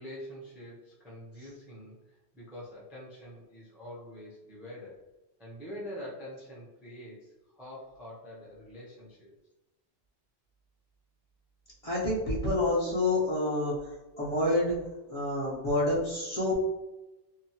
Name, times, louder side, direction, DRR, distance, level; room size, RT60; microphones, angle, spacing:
voice 1, 0.0-5.0 5.4-9.3, equal, ahead, -6 dB, 0.5 m, -45 dB
voice 2, 11.8-14.8 15.1-16.5, left 1 dB, 35° left, -8 dB, 0.7 m, -28 dB
2.8 x 2.0 x 2.8 m, 1.0 s
omnidirectional pair, 1.2 m